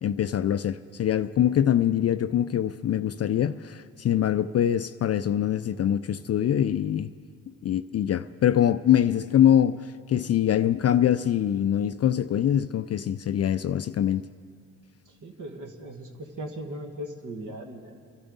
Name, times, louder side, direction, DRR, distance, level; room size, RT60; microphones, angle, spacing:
voice 1, 0.0-7.1 7.6-14.3, left 10 dB, 40° left, 0.4 m, -24 dB
voice 2, 15.1-17.9, right 1 dB, 50° right, 1.9 m, -38 dB
24.5 x 12.0 x 4.0 m
supercardioid pair, 50°, 40 cm